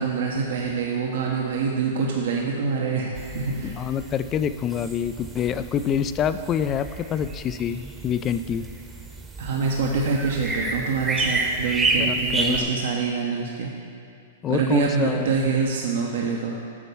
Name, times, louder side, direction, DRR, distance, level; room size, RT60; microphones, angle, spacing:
voice 1, 0.0-3.8 9.4-13.7 14.5-16.6, right 5 dB, 70° right, -1 dB, 0.9 m, -25 dB
sound 1, 3.2-12.6, right 2 dB, 15° right, 0.9 m, -30 dB
voice 2, 3.6-8.7 12.0-13.0 14.4-15.3, left 8 dB, 25° left, 12 dB, 0.3 m, -26 dB
8.4 x 4.5 x 6.9 m, 2.6 s
hypercardioid pair, 130°, 0 cm